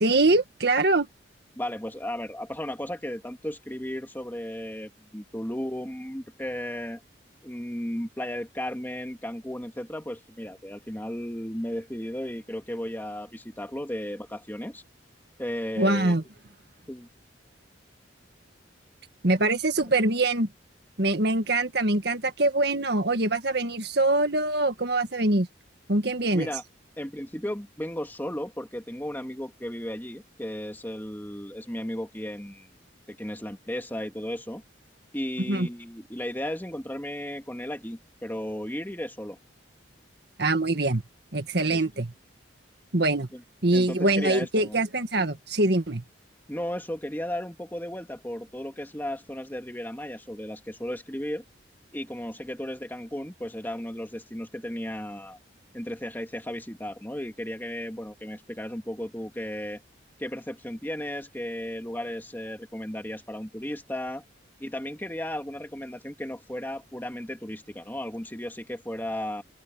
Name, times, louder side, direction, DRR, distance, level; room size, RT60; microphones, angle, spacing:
voice 1, 0.0-1.1 15.8-16.2 19.2-20.5 21.0-25.5 25.9-26.5 35.5-35.7 40.4-41.0 41.3-42.1 42.9-43.3 43.6-46.0, right 2 dB, 60° right, 1.9 m, -24 dB
voice 2, 1.5-7.0 7.4-14.8 15.4-16.2 16.9-17.1 26.2-26.6 27.0-32.7 33.1-34.6 35.1-39.4 41.7-41.8 43.3-43.4 43.7-44.8 46.5-51.4 51.9-55.4 55.7-59.8 60.2-64.2 64.6-69.4, left 1 dB, 10° left, 2.6 m, -35 dB
open air
head